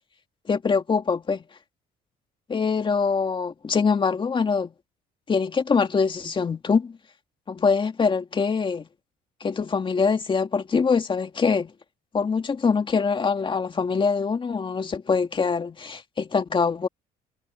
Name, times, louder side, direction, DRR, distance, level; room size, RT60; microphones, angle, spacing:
voice 1, 0.5-1.4 2.5-4.7 5.3-7.0 7.5-8.9 9.4-11.7 12.1-16.9, left 5 dB, 30° left, 2.1 m, -24 dB
cardioid pair, 110°, 17 cm